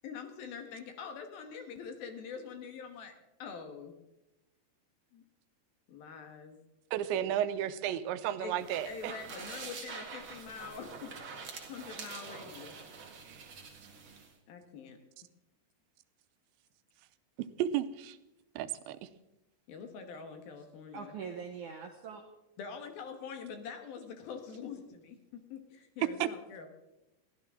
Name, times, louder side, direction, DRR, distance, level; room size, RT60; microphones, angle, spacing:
voice 1, 0.0-3.1 3.4-4.0 5.1-5.2 5.9-6.6 8.4-11.1 11.7-12.7 14.5-15.0 19.7-21.1 22.6-25.2 25.5-26.7, left 6 dB, 65° left, 6 dB, 2.9 m, -44 dB
voice 2, 6.9-9.1 13.3-13.5 17.6-18.2 18.6-19.1 26.0-26.3, right 11 dB, 85° right, 11 dB, 3.1 m, -33 dB
sound 1, 8.5-14.3, right 5 dB, 45° right, 1.7 m, -46 dB
voice 3, 20.9-22.2, right 6 dB, 70° right, 3 dB, 1.9 m, -43 dB
22.5 x 15.5 x 3.7 m, 0.95 s
omnidirectional pair, 5.1 m